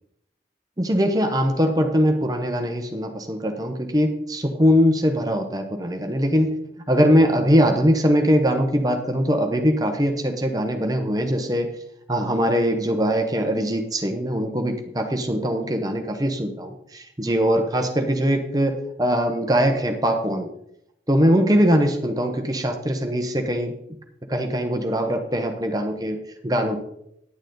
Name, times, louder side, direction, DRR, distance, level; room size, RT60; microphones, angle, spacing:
voice 1, 0.8-6.5 6.9-11.7 12.1-20.5 21.1-23.7 24.3-26.8, equal, 20° right, 4 dB, 1.0 m, -21 dB
10.5 x 9.1 x 3.9 m, 0.76 s
head